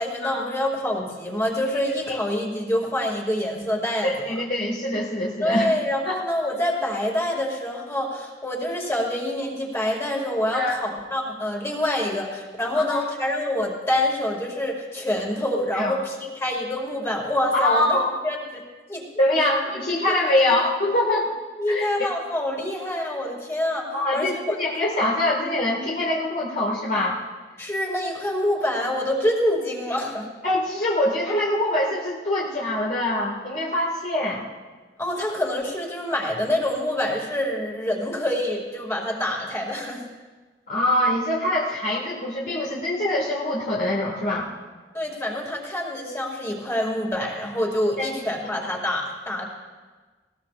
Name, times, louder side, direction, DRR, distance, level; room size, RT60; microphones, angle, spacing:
voice 1, 0.0-4.1 5.4-18.0 18.2-18.6 18.9-19.0 19.4-19.5 20.0-20.1 21.6-24.5 27.6-30.3 35.0-40.0 44.9-49.5, left 1 dB, 15° left, -1 dB, 2.5 m, -26 dB
voice 2, 4.0-5.7 6.0-6.2 10.5-10.8 12.7-13.1 15.7-15.9 17.5-18.1 19.2-21.3 21.7-21.9 23.9-27.2 30.4-34.4 40.7-44.5 48.0-48.1 48.4-48.5, left 1 dB, 50° left, -5 dB, 2.1 m, -24 dB
19.5 x 19.0 x 2.6 m, 1.3 s
head